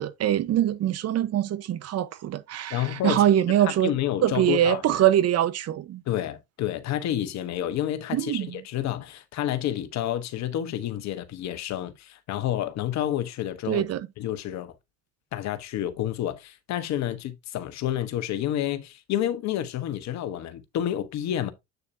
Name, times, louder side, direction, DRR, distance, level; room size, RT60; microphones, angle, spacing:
voice 1, 0.0-3.9 4.2-6.0 8.1-8.6 13.7-14.1, right 11 dB, 50° right, 1.1 m, -23 dB
voice 2, 2.7-3.2 3.6-4.8 6.1-13.9 14.2-14.7 15.3-21.5, left 11 dB, 55° left, 1.3 m, -29 dB
8.3 x 6.6 x 2.7 m
supercardioid pair, 85°, 32 cm